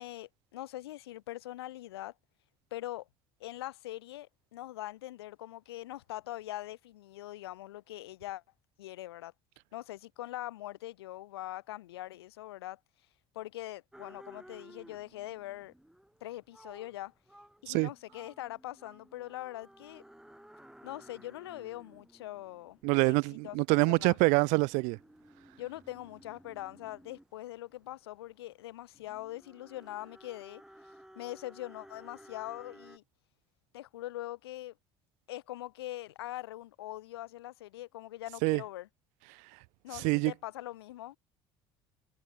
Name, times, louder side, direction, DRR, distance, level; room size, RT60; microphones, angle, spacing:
voice 1, 0.0-2.1 2.7-3.1 3.4-8.4 8.8-9.3 9.7-12.8 13.3-15.7 16.2-17.1 17.6-20.0 20.8-23.1 23.4-24.3 25.6-30.6 31.1-33.0 33.7-34.7 35.3-38.9 39.8-41.2, left 15 dB, 90° left, 3.4 m, -42 dB
sound 1, 13.9-33.0, right 1 dB, 5° right, 5.6 m, -56 dB
voice 2, 22.8-25.0 38.4-38.6 39.3-39.6 39.9-40.3, right 31 dB, 75° right, 0.7 m, -26 dB
hypercardioid pair, 70°, 13 cm